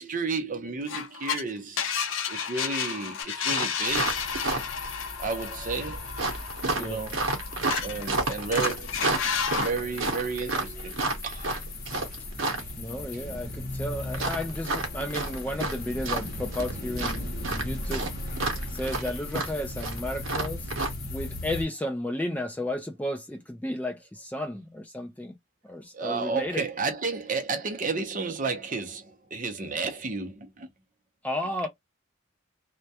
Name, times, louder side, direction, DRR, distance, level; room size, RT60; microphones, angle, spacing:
voice 1, 0.0-1.8 2.3-4.1 5.2-6.1 6.7-7.4 7.8-8.9 9.5-11.5 25.9-30.7, right 4 dB, 40° right, 0.6 m, -32 dB
sound 1, 0.9-1.4 1.8-8.1 8.3-9.7, left 7 dB, 70° left, 0.5 m, -32 dB
sound 2, 3.2-3.3 3.5-4.9 6.2-12.7 14.1-15.8 16.0-16.7 17.0-20.9, right 3 dB, 75° right, 0.8 m, -29 dB
sound 3, 3.9-21.6, left 1 dB, 50° left, 0.8 m, -37 dB
voice 2, 12.8-18.1 18.7-20.7 21.1-25.4 25.7-26.6 31.2-31.7, left 1 dB, 10° left, 0.3 m, -33 dB
2.2 x 2.2 x 2.7 m
head